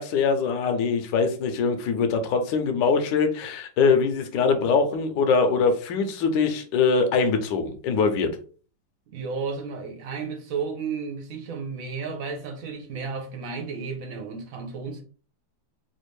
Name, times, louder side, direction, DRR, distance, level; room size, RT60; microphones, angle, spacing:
voice 1, 0.0-8.3, left 5 dB, 70° left, 1.3 m, -23 dB
voice 2, 9.1-15.0, right 5 dB, 65° right, 0.8 m, -33 dB
4.1 x 2.5 x 3.1 m
omnidirectional pair, 2.2 m